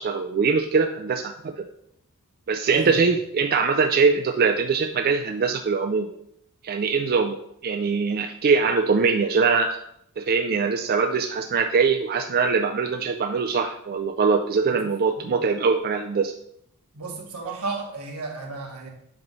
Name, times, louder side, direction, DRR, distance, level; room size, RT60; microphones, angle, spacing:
voice 1, 0.0-1.7 2.5-6.1 6.6-9.8 10.2-16.3, right 5 dB, 45° right, 5 dB, 0.4 m, -22 dB
voice 2, 2.7-3.2 14.6-14.8 15.2-15.3 16.9-18.9, right 3 dB, 80° right, 0 dB, 1.5 m, -33 dB
7.7 x 3.1 x 5.4 m, 0.74 s
head